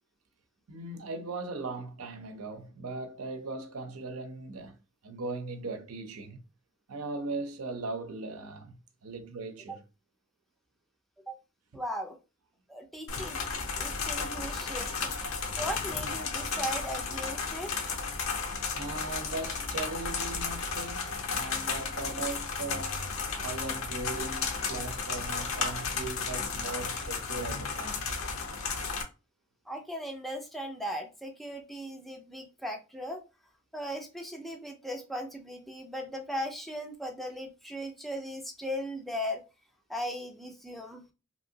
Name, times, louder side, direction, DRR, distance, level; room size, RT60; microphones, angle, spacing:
voice 1, 0.7-4.8 5.0-6.4 6.9-9.8 18.7-22.9 23.4-28.1, right 3 dB, 90° right, 0.6 m, -39 dB
voice 2, 11.7-12.2 12.7-14.9 15.6-18.0 29.7-33.2 33.7-39.4 39.9-41.1, equal, ahead, 0.4 m, -38 dB
sound 1, 13.1-29.0, left 5 dB, 70° left, 0.6 m, -33 dB
2.9 x 2.7 x 2.7 m
head